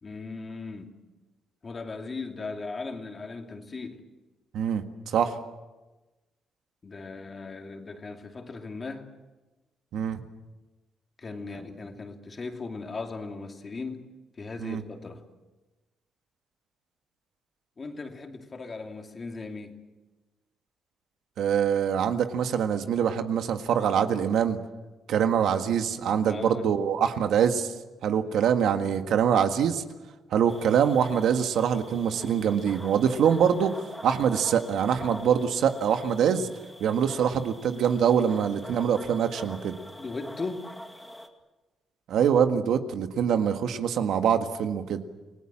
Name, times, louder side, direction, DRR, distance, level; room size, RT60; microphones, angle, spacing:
voice 1, 0.0-1.0 1.6-4.0 6.8-9.1 11.2-14.1 14.4-15.2 17.8-19.8 26.1-26.6 40.0-40.7, left 3 dB, 30° left, 2.7 m, -38 dB
voice 2, 4.5-5.4 9.9-10.2 14.6-14.8 21.4-24.6 25.1-27.7 28.0-29.8 30.3-33.8 34.0-36.5 36.8-39.8 42.1-45.0, right 8 dB, 75° right, 1.8 m, -24 dB
sound 1, 30.5-41.3, equal, ahead, 2.2 m, -44 dB
29.0 x 19.0 x 7.5 m
cardioid pair, 125°, 0 cm